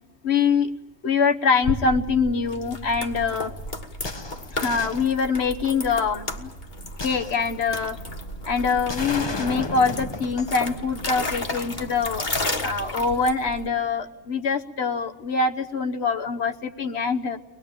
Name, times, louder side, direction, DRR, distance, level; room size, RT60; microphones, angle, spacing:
voice 1, 0.2-0.7 1.0-3.5 4.5-6.5 7.0-8.0 8.4-12.3 12.6-17.4, left 5 dB, 75° left, 5 dB, 1.3 m, -24 dB
sound 1, 1.6-13.7, left 1 dB, 45° left, 1.8 m, -33 dB
sound 2, 4.0-5.6 7.0-8.0 8.9-10.7 11.1-11.2, left 3 dB, 25° left, 0.8 m, -33 dB
24.0 x 20.5 x 9.0 m, 1.1 s
omnidirectional pair, 1.1 m